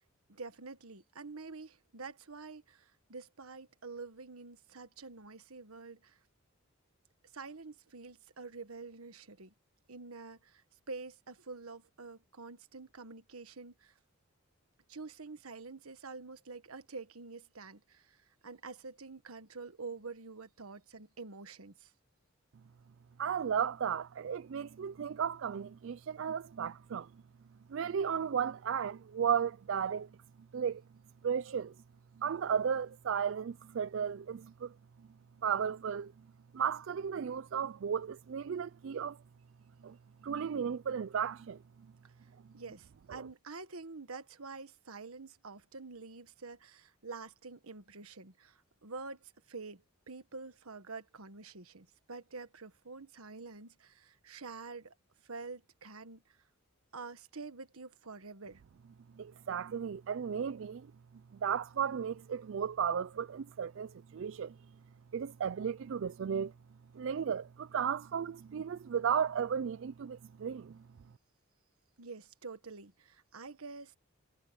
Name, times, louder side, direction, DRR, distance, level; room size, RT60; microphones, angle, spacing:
voice 1, 0.3-6.2 7.3-9.5 9.9-14.0 14.9-21.9 42.0-42.1 42.5-54.9 55.2-56.4 56.9-58.6 72.0-74.0, right 4 dB, 90° right, 1.5 m, -47 dB
voice 2, 23.2-27.1 27.7-30.1 30.5-30.8 31.2-31.7 32.2-34.7 35.4-36.1 36.5-39.2 39.8-40.0 40.2-41.6 43.1-43.2 59.2-60.9 61.3-64.6 65.1-66.5 66.9-70.8, right 7 dB, 65° right, 0.4 m, -34 dB
head